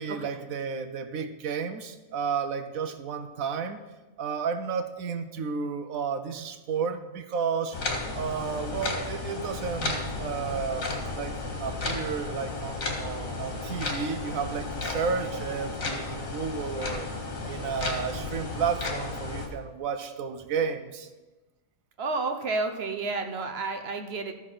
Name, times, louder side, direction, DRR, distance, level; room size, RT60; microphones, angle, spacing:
voice 1, 0.0-3.8 4.2-7.8 8.1-17.1 17.5-21.1, right 6 dB, 85° right, 9 dB, 1.2 m, -32 dB
sound 1, 7.7-19.5, left 3 dB, 80° left, 2.1 m, -33 dB
voice 2, 22.0-24.3, right 3 dB, 55° right, 6 dB, 1.1 m, -31 dB
13.5 x 5.9 x 6.1 m, 1.2 s
omnidirectional pair, 1.4 m